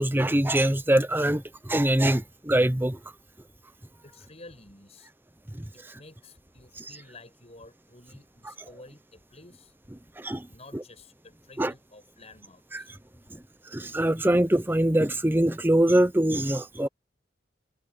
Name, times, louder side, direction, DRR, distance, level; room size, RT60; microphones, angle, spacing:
voice 1, 0.0-3.0 5.5-5.6 6.8-6.9 10.2-10.5 10.7-10.8 11.6-11.7 12.7-12.8 13.7-16.9, right 1 dB, 10° right, 0.7 m, -23 dB
voice 2, 4.0-5.1 5.9-9.7 10.5-12.9, left 2 dB, 35° left, 7.6 m, -51 dB
head